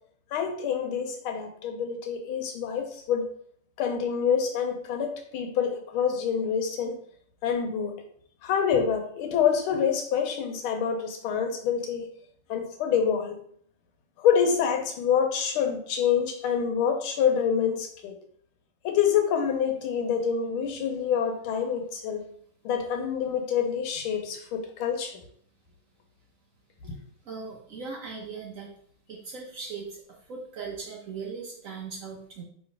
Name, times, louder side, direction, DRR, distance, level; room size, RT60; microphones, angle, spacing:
voice 1, 0.3-3.3 3.8-6.9 7.4-7.9 8.4-12.1 12.5-13.4 14.2-18.2 18.8-22.2 22.6-25.2 26.8-27.0, left 7 dB, 80° left, 4 dB, 1.5 m, -26 dB
voice 2, 27.2-28.7 29.1-32.4, right 5 dB, 70° right, -1 dB, 0.8 m, -39 dB
3.5 x 3.1 x 4.6 m, 0.62 s
omnidirectional pair, 2.3 m